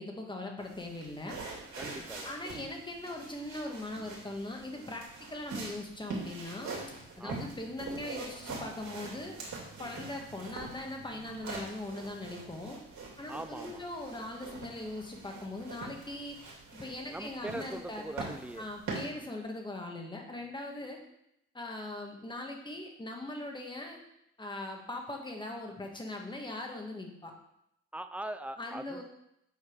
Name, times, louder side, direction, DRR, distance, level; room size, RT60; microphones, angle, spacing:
voice 1, 0.0-1.4 2.2-5.0 5.3-9.4 9.8-12.8 13.2-16.4 16.7-18.3 18.6-21.0 21.5-24.0 24.4-27.3 28.6-29.0, left 2 dB, 15° left, 2 dB, 1.6 m, -40 dB
sound 1, 0.6-19.1, right 3 dB, 65° right, 3.0 m, -44 dB
voice 2, 1.8-2.3 7.2-7.5 13.3-13.8 17.1-18.7 27.9-29.0, right 1 dB, 5° right, 10 dB, 0.5 m, -41 dB
8.4 x 4.6 x 4.6 m, 0.79 s
cardioid pair, 90°, 30 cm